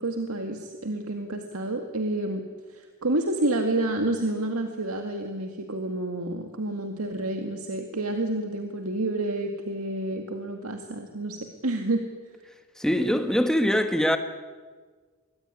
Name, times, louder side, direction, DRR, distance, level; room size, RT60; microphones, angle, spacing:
voice 1, 0.0-12.0, right 2 dB, 90° right, 2.1 m, -29 dB
voice 2, 12.8-14.2, equal, 5° left, 1.5 m, -23 dB
26.0 x 22.0 x 9.9 m
head